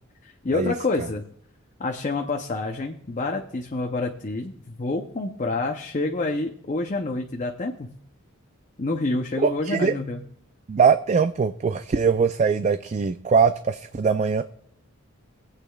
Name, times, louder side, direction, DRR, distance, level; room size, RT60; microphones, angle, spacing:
voice 1, 0.2-1.2 1.8-7.9 8.8-10.2, left 3 dB, 35° left, 3 dB, 0.6 m, -28 dB
voice 2, 9.4-9.9 10.7-14.4, right 5 dB, 35° right, 10 dB, 0.3 m, -21 dB
24.0 x 8.2 x 2.3 m, 0.70 s
head